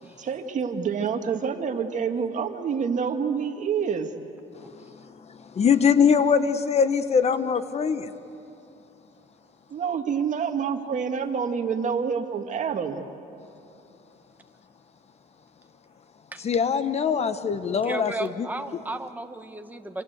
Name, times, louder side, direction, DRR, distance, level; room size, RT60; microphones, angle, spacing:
voice 1, 0.0-4.1 9.7-13.0, right 6 dB, 45° right, 5 dB, 2.0 m, -27 dB
voice 2, 5.3-8.1 16.4-18.1 18.4-18.5, left 6 dB, 40° left, 11 dB, 1.2 m, -22 dB
voice 3, 17.8-20.0, right 2 dB, 10° right, 6 dB, 1.4 m, -34 dB
27.0 x 26.5 x 8.2 m, 2.7 s
cardioid pair, 110°, 17 cm